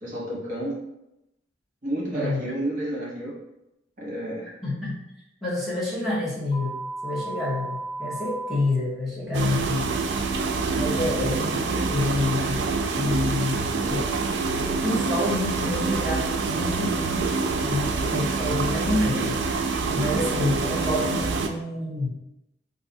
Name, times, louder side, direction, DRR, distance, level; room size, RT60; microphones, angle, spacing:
voice 1, 0.0-0.8 1.8-3.3 4.0-4.5, right 1 dB, 50° right, -4 dB, 1.0 m, -30 dB
voice 2, 2.1-2.5 4.6-5.0 5.4-6.8 7.0-9.9 10.7-14.1 14.8-22.1, left 2 dB, ahead, -8 dB, 0.9 m, -28 dB
sound 1, 6.5-8.5, right 2 dB, 30° left, 1.4 m, -34 dB
sound 2, 9.3-21.5, right 4 dB, 75° right, 0.4 m, -26 dB
2.6 x 2.4 x 3.9 m, 0.88 s
head